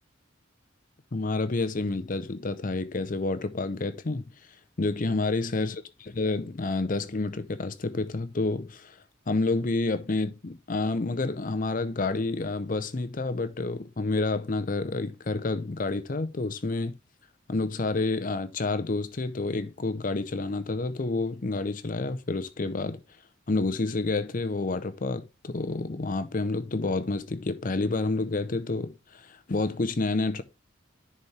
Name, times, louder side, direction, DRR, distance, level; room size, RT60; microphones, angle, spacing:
voice 1, 1.1-4.3 4.8-9.0 9.3-17.0 17.5-23.0 23.5-30.4, left 3 dB, 45° left, 0.6 m, -29 dB
10.5 x 4.3 x 3.2 m
head